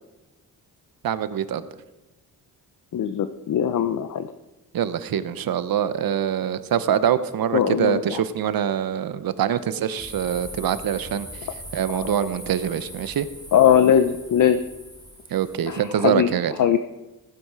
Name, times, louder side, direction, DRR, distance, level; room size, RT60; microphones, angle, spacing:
voice 1, 1.0-1.7 4.7-11.3 11.7-13.3 15.3-16.5, right 9 dB, 65° right, 13 dB, 0.9 m, -24 dB
voice 2, 2.9-4.3 7.5-8.2 11.9-12.0 13.5-14.6 15.7-16.3 16.6-16.8, left 9 dB, 55° left, 10 dB, 0.7 m, -20 dB
sound 1, 10.0-15.9, equal, 10° left, 3.8 m, -40 dB
15.5 x 9.6 x 4.8 m, 1.1 s
cardioid pair, 120°, 38 cm